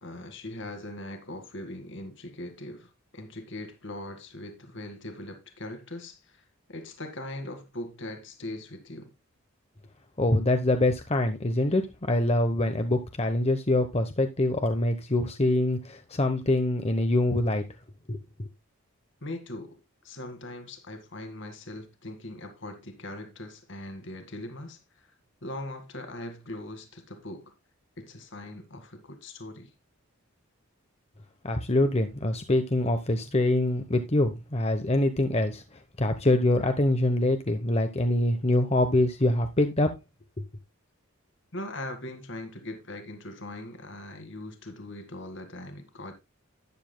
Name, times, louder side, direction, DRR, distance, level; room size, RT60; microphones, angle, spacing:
voice 1, 0.0-9.1 19.2-25.1 25.4-27.5 28.0-29.7 41.5-46.1, left 1 dB, 55° left, 2.0 m, -40 dB
voice 2, 10.2-17.6 18.1-18.5 31.4-35.6 36.0-40.0 40.4-40.5, left 1 dB, 30° left, 0.9 m, -25 dB
12.0 x 9.9 x 2.2 m
head